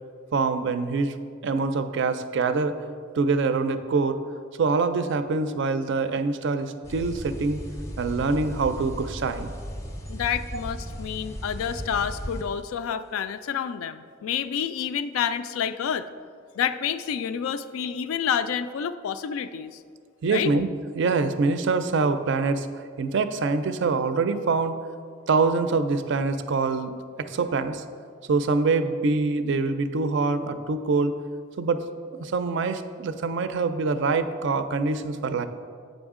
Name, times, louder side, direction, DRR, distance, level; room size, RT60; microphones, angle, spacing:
voice 1, 0.3-1.2 1.4-2.8 3.2-4.2 4.6-7.6 8.0-9.5 20.2-20.7 21.0-22.7 23.0-24.8 25.3-26.9 27.2-27.8 28.3-31.1 31.6-31.8 32.2-35.5, right 4 dB, 60° right, 10 dB, 0.4 m, -24 dB
sound 1, 6.8-12.4, equal, 15° left, 0.5 m, -36 dB
voice 2, 10.1-16.1 16.6-19.8 20.3-20.5, left 8 dB, 90° left, 12 dB, 0.3 m, -29 dB
7.0 x 5.3 x 3.6 m, 2.1 s
head